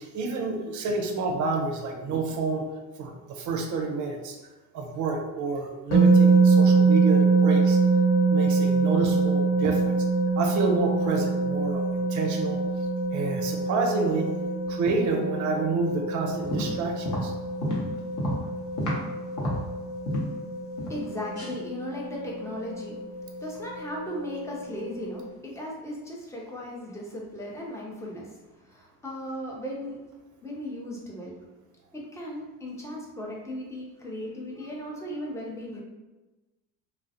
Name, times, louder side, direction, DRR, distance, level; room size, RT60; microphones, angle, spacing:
voice 1, 0.0-2.6 3.0-4.4 4.7-7.8 8.3-10.0 10.3-12.6 13.1-14.3 14.7-17.3, right 4 dB, 40° right, 3 dB, 0.6 m, -29 dB
sound 1, 5.9-25.3, right 4 dB, 65° left, 1.0 m, -24 dB
sound 2, 16.3-19.1 19.4-20.4 20.8-21.1 21.3-21.5, equal, 40° left, 0.9 m, -30 dB
voice 2, 20.9-23.0 23.4-30.0 30.4-31.5 31.9-35.8, equal, 5° left, -3 dB, 0.6 m, -37 dB
2.3 x 2.0 x 2.7 m, 1.1 s
hypercardioid pair, 60°, 47 cm